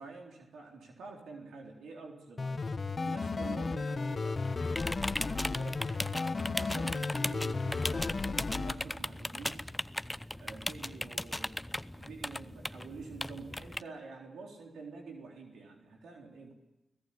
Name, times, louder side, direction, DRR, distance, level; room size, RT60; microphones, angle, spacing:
voice 1, 0.0-4.4 5.3-9.6 10.4-11.7 12.0-16.5, right 4 dB, 80° right, 1 dB, 3.8 m, -48 dB
sound 1, 2.4-8.7, left 3 dB, 45° left, 1.6 m, -34 dB
working sounds keyboard mouse, 4.3-13.8, left 1 dB, 10° left, 0.8 m, -38 dB
30.0 x 17.5 x 8.6 m, 0.97 s
supercardioid pair, 40°, 0 cm